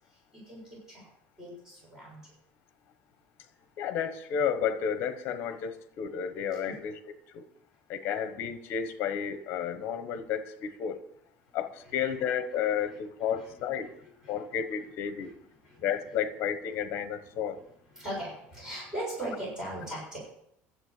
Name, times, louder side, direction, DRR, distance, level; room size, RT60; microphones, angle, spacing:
voice 1, 0.5-1.1 1.4-2.2 6.7-6.8 11.8-11.9 13.4-13.5 14.0-14.4 15.2-15.3 15.6-15.8 18.0-20.3, right 1 dB, 10° right, -5 dB, 7.1 m, -39 dB
voice 2, 3.8-7.0 7.3-7.4 7.9-11.0 11.5-13.9 14.3-15.3 15.8-17.6, left 8 dB, 45° left, 11 dB, 1.2 m, -32 dB
12.5 x 7.9 x 8.4 m, 0.75 s
cardioid pair, 180°, 5 cm